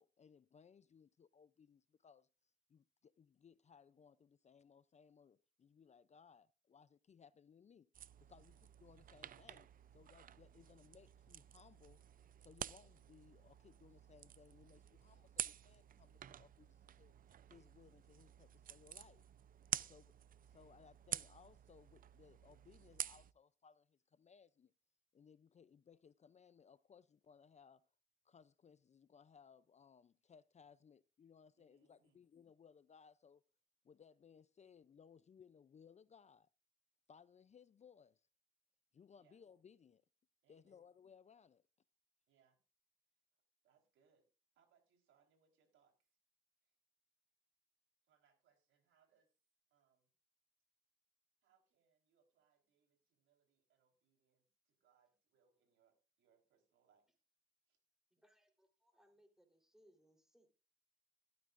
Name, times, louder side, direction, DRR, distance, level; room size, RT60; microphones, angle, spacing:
voice 1, 0.0-2.3 2.7-7.9 8.2-12.0 12.4-17.1 17.5-19.3 19.9-20.1 20.4-24.7 25.1-27.9 28.2-33.4 33.8-36.5 37.1-38.3 38.9-40.0 40.5-41.7, left 6 dB, 35° left, 0.5 m, -64 dB
sound 1, 7.9-23.3, right 10 dB, 45° right, 0.5 m, -50 dB
voice 2, 8.3-8.6 19.8-20.0 31.6-32.2 39.2-39.4 40.4-40.8 42.3-42.6 43.6-44.3 44.5-46.2 46.6-46.8 48.0-49.4 49.7-50.1 51.4-57.2 57.6-57.8, right 7 dB, 80° right, 4.1 m, -78 dB
voice 3, 58.1-60.5, equal, ahead, 3.7 m, -71 dB
15.5 x 12.5 x 2.5 m
cardioid pair, 90°, 20 cm